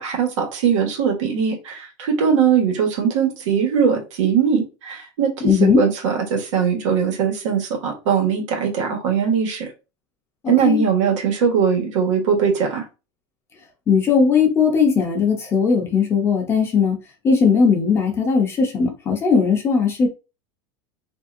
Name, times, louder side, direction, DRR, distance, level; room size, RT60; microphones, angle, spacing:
voice 1, 0.0-9.7 10.5-12.8, right 7 dB, 85° right, 1.3 m, -20 dB
voice 2, 5.4-5.8 10.4-10.8 13.9-17.0 17.2-20.1, left 5 dB, 15° left, 0.6 m, -18 dB
3.3 x 2.6 x 2.5 m
supercardioid pair, 170°, 15 cm